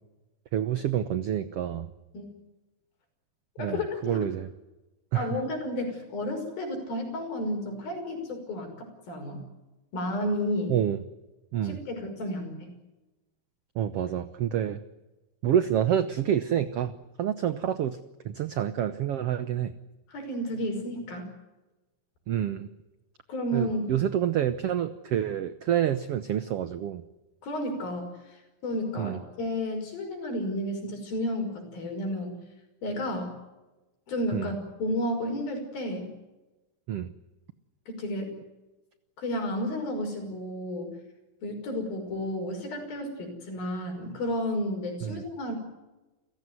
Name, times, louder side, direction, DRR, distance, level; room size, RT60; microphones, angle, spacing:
voice 1, 0.5-1.9 3.6-4.5 5.1-5.4 10.7-11.0 11.5-11.8 13.7-14.8 15.4-18.0 18.2-19.7 22.3-22.7 23.5-27.0 29.0-29.2 34.3-34.5 36.9-37.1 45.0-45.2, right 10 dB, 80° right, 12 dB, 1.3 m, -28 dB
voice 2, 3.6-4.2 5.1-9.4 9.9-10.7 11.6-12.7 20.1-21.3 23.3-23.9 27.4-28.1 28.6-32.4 32.8-33.4 34.1-36.1 37.9-38.3 39.2-40.9 41.4-45.6, left 1 dB, 90° left, 4 dB, 7.6 m, -32 dB
29.5 x 16.0 x 9.4 m, 1.1 s
omnidirectional pair, 4.1 m